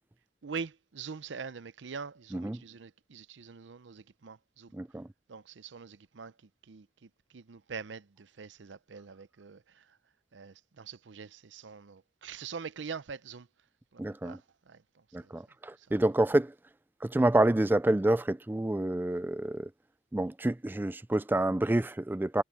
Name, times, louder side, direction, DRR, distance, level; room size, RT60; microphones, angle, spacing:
voice 1, 0.4-4.7 5.3-6.3 6.6-10.0 10.3-13.5 13.9-15.3 15.8-15.9, right 5 dB, 85° right, 0.6 m, -44 dB
voice 2, 4.7-5.1 14.0-14.4 15.1-16.5 17.0-19.7 20.1-22.4, right 1 dB, 10° right, 0.3 m, -28 dB
head